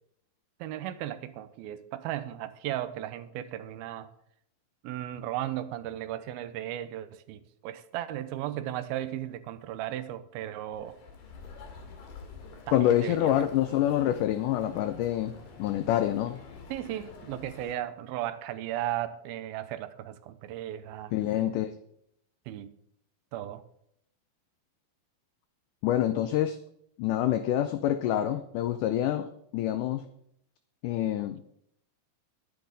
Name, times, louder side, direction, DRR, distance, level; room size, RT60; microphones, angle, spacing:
voice 1, 0.6-4.1 4.8-11.0 12.7-13.3 13.7-13.8 16.7-21.1 22.5-22.8 23.3-23.6, right 12 dB, 85° right, 13 dB, 2.5 m, -36 dB
sound 1, 10.7-17.7, left 5 dB, 70° left, 3.4 m, -48 dB
voice 2, 12.7-16.4 21.1-21.7 25.8-26.6 27.0-30.0 30.8-31.4, left 12 dB, 85° left, 10 dB, 1.8 m, -27 dB
10.5 x 10.0 x 4.0 m, 0.72 s
omnidirectional pair, 4.3 m